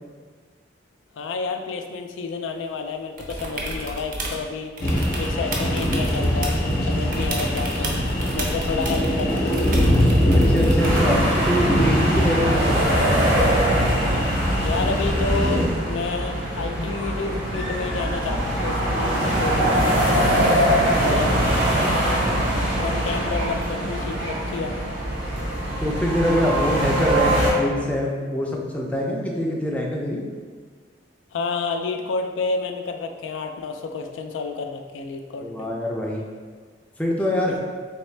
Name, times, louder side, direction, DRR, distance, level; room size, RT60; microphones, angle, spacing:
voice 1, 1.1-4.8 5.2-6.6 6.9-8.1 8.3-9.5 14.6-20.5 21.0-21.8 22.8-24.8 31.3-35.7 37.5-37.6, left 4 dB, 90° left, 5 dB, 0.3 m, -30 dB
sound 1, 3.2-4.4 4.8-6.8 7.1-11.2 13.0-13.1, right 1 dB, 50° right, 0.6 m, -32 dB
sound 2, 4.8-15.7, equal, 55° left, 0.7 m, -22 dB
voice 2, 10.3-13.1 20.9-21.2 25.8-30.2 35.4-36.2 37.0-37.6, equal, 10° left, -2 dB, 0.4 m, -24 dB
sound 3, 10.8-27.5, right 1 dB, 90° right, 1.3 m, -23 dB
3.5 x 3.1 x 3.2 m, 1.5 s
head